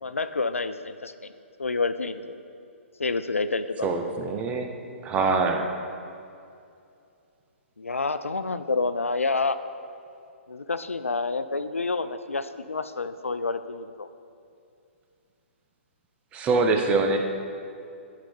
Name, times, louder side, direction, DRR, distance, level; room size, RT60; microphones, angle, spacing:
voice 1, 0.0-1.3 1.6-2.2 3.0-3.9 7.8-9.6 10.5-14.1, left 3 dB, 85° left, 12 dB, 0.4 m, -28 dB
voice 2, 3.8-4.7 5.0-5.7 16.3-17.2, right 3 dB, 15° right, 4 dB, 0.6 m, -24 dB
10.5 x 4.5 x 4.3 m, 2.5 s
figure-of-eight pair, 125°, 7 cm